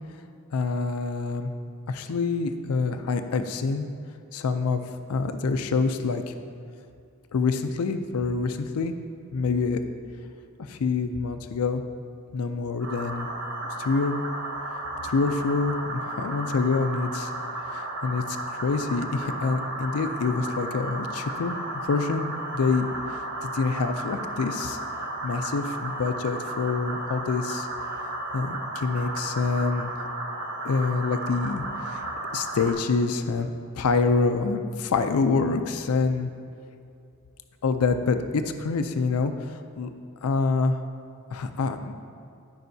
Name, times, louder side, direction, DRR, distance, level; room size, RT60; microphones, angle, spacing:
voice 1, 0.5-1.5 1.9-3.9 4.3-4.8 5.1-6.3 7.3-8.9 9.3-9.8 10.6-11.8 12.3-13.3 13.8-14.2 15.0-17.3 17.7-24.8 25.2-27.7 28.3-29.9 30.6-32.1 32.3-33.5 33.7-36.3 37.6-39.9 40.2-40.8 41.3-41.9, left 4 dB, 85° left, 8 dB, 0.4 m, -26 dB
sound 1, 12.8-32.7, right 2 dB, 55° right, 1.1 m, -34 dB
14.0 x 5.6 x 2.7 m, 2.5 s
head